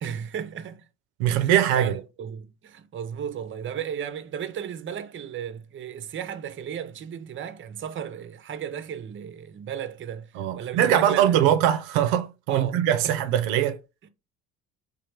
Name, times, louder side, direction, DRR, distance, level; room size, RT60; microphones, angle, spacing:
voice 1, 0.0-0.9 1.3-11.6 12.5-12.8 13.0-13.1, right 8 dB, 30° right, 0.5 m, -35 dB
voice 2, 1.2-2.0 10.4-13.8, right 10 dB, 85° right, 0.5 m, -22 dB
3.1 x 2.3 x 3.0 m
hypercardioid pair, 55°, 39 cm